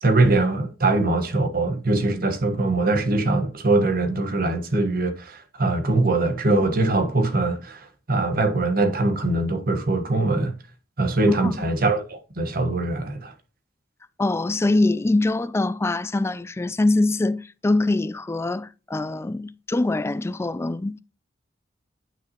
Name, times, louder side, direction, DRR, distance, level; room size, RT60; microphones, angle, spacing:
voice 1, 0.0-10.5 11.0-13.3, right 2 dB, 55° right, 1.3 m, -22 dB
voice 2, 11.3-11.7 14.2-21.0, left 2 dB, 15° left, 0.3 m, -23 dB
9.1 x 5.8 x 2.9 m
head